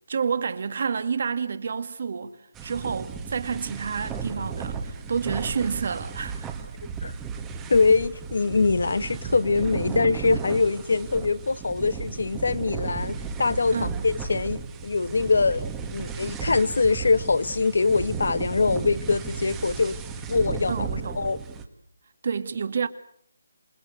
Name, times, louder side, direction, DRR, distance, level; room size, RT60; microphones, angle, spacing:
voice 1, 0.1-6.5 13.7-13.9 20.7-21.2 22.2-22.9, right 6 dB, 45° right, 2.1 m, -29 dB
sound 1, 2.6-21.6, right 5 dB, 10° right, 1.7 m, -34 dB
voice 2, 7.7-20.0 20.3-20.9 21.1-21.4, left 4 dB, 70° left, 1.4 m, -23 dB
28.0 x 20.0 x 8.2 m
hypercardioid pair, 170°, 0 cm